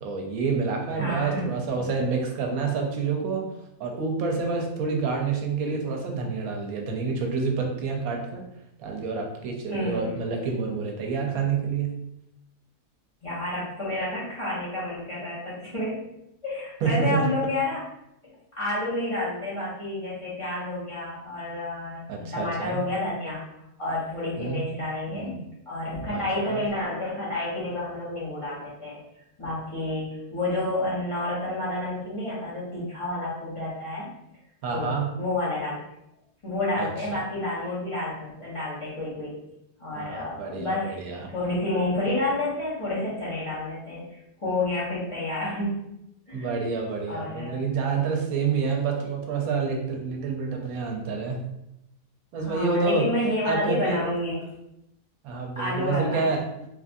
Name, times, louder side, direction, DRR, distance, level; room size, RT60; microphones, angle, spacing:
voice 1, 0.0-3.5 3.8-8.4 8.8-11.9 16.8-17.2 22.1-22.8 24.4-24.6 25.1-25.4 26.1-26.6 34.6-35.1 36.8-37.2 39.9-41.3 46.3-51.4 52.3-53.1 53.4-54.0 55.2-56.4, right 5 dB, 80° right, 2 dB, 1.1 m, -28 dB
voice 2, 0.9-1.5 9.7-10.1 13.2-16.0 16.4-17.9 18.2-23.4 23.8-29.0 29.4-34.1 34.7-35.8 36.4-39.4 39.8-41.0 41.3-45.8 46.3-46.6 47.1-47.5 52.3-54.4 55.6-56.2, left 2 dB, 25° left, -9 dB, 0.8 m, -30 dB
3.2 x 2.5 x 2.5 m, 0.83 s
omnidirectional pair, 1.5 m